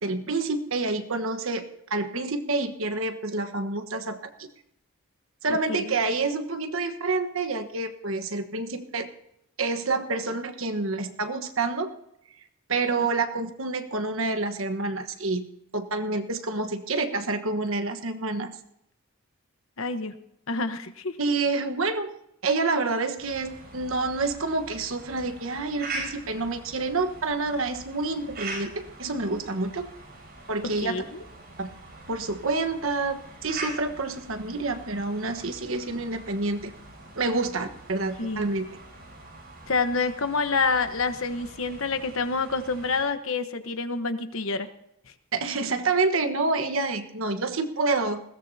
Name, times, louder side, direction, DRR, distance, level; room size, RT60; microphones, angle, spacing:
voice 1, 0.0-4.5 5.4-9.1 9.6-11.9 12.7-15.4 15.7-18.5 21.2-22.1 22.4-29.9 30.5-31.0 31.6-31.7 32.1-36.7 37.2-38.7 45.3-48.2, right 3 dB, 70° right, 8 dB, 1.3 m, -28 dB
voice 2, 5.5-5.9 19.8-20.1 20.5-21.2 30.8-31.2 38.2-38.5 39.7-44.7, left 4 dB, 70° left, 9 dB, 1.1 m, -28 dB
sound 1, 23.2-43.0, right 2 dB, 45° right, 7.4 m, -43 dB
20.5 x 16.5 x 2.8 m, 0.80 s
head